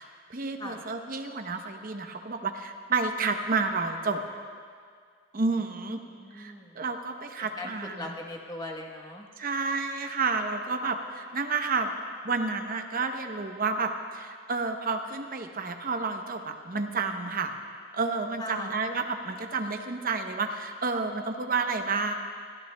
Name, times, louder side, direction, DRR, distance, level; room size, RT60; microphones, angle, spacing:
voice 1, 0.0-4.2 5.3-6.0 6.3-8.1 9.4-11.9 12.2-17.5 17.9-22.1, right 4 dB, 40° right, 5 dB, 0.7 m, -30 dB
voice 2, 6.1-6.8 7.4-9.3 18.4-18.7, left 2 dB, 20° left, 1 dB, 1.1 m, -40 dB
24.0 x 14.0 x 2.2 m, 2.1 s
head